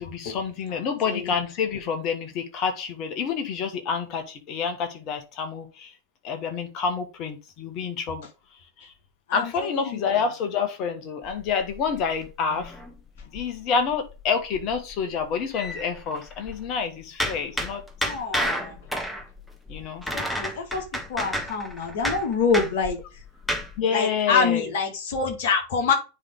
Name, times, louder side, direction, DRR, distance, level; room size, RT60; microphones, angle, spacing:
voice 1, 0.0-5.9 6.2-8.3 8.8-8.9 9.3-12.8 13.3-17.8 19.7-20.0 23.8-24.7, left 6 dB, 40° left, 1.6 m, -28 dB
voice 2, 0.7-1.3 9.3-10.2 18.0-18.9 20.1-23.2 23.9-25.9, left 5 dB, 55° left, 2.1 m, -26 dB
sound 1, 11.2-13.6 13.9-14.2 14.5-16.7 17.2-23.8, equal, 5° left, 1.3 m, -31 dB
9.6 x 3.5 x 3.9 m
figure-of-eight pair, 90°, 0 cm